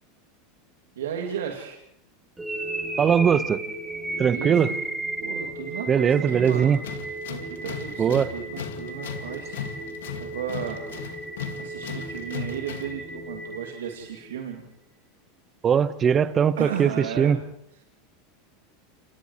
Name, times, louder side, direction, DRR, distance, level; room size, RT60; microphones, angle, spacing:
voice 1, 1.0-1.8 4.3-4.8 5.2-6.7 7.3-9.6 10.2-10.9 11.6-14.6 16.6-17.4, right 8 dB, 75° right, 1 dB, 2.5 m, -34 dB
sound 1, 2.4-14.4, right 2 dB, 10° right, 4.1 m, -35 dB
voice 2, 3.0-3.6 4.2-4.7 5.9-6.8 8.0-8.3 15.6-17.4, right 7 dB, 30° right, 14 dB, 1.2 m, -20 dB
Tools, 6.4-13.0, left 8 dB, 75° left, 2.1 m, -37 dB
29.5 x 29.0 x 3.2 m, 0.79 s
hypercardioid pair, 90°, 0 cm